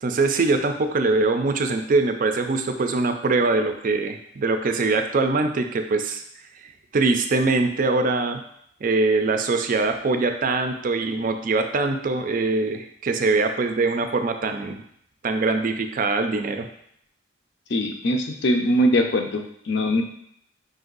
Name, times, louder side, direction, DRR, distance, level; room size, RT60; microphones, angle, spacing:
voice 1, 0.0-6.2 6.9-8.4 8.8-14.8 15.2-16.6, right 3 dB, 45° right, 6 dB, 0.4 m, -23 dB
voice 2, 17.7-20.0, equal, 60° left, 4 dB, 0.6 m, -22 dB
5.3 x 2.6 x 3.9 m, 0.70 s
head